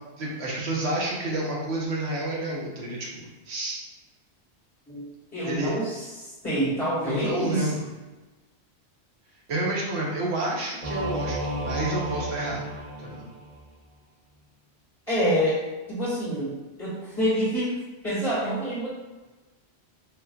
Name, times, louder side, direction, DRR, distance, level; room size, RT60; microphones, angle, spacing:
voice 1, 0.2-3.8 5.4-5.8 7.0-7.8 9.5-12.6 13.0-13.3, right 1 dB, 75° right, -3 dB, 1.0 m, -29 dB
voice 2, 5.3-7.7 15.1-15.6 15.9-17.7 18.0-18.9, equal, 15° left, -9 dB, 1.5 m, -27 dB
Singing / Musical instrument, 10.8-13.7, right 1 dB, 35° right, 1.1 m, -33 dB
3.6 x 2.7 x 2.3 m, 1.2 s
omnidirectional pair, 1.1 m